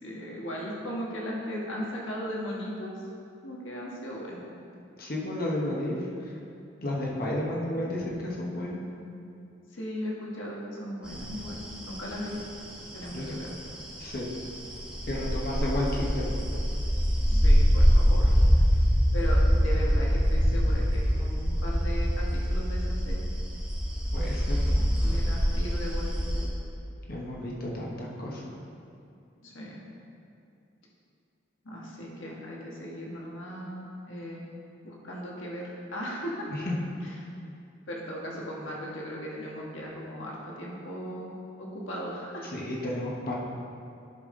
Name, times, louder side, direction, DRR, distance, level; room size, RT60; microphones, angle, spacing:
voice 1, 0.0-2.9 3.4-4.4 9.7-11.6 11.8-12.4 12.9-13.5 17.3-18.3 19.1-23.2 25.0-26.5 29.4-29.8 31.6-34.4 34.8-36.5 37.0-37.1 37.9-42.5, equal, 80° left, -3 dB, 1.5 m, -37 dB
voice 2, 5.0-6.0 6.2-6.3 6.8-8.8 13.1-13.3 14.0-14.3 15.1-16.3 24.1-24.8 27.1-28.4 36.5-36.8 42.4-43.4, left 1 dB, 50° left, -4 dB, 1.2 m, -32 dB
sound 1, 11.0-26.5, equal, 5° right, 1.4 m, -25 dB
11.0 x 5.7 x 3.8 m, 2.6 s
head